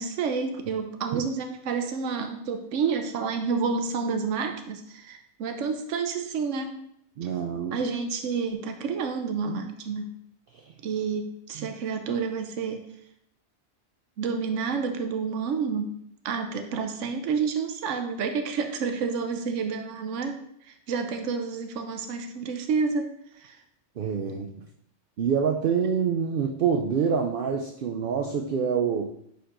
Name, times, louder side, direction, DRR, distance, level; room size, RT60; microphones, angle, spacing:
voice 1, 0.0-6.7 7.7-10.1 10.8-12.9 14.2-16.0 16.2-20.4 20.7-23.1 23.4-23.6, right 5 dB, 85° right, 6 dB, 1.0 m, -29 dB
voice 2, 7.2-7.8 10.5-10.7 11.6-11.7 24.0-24.7 25.2-29.1, right 6 dB, 60° right, 3 dB, 0.6 m, -26 dB
10.0 x 4.3 x 2.5 m, 0.74 s
omnidirectional pair, 1.2 m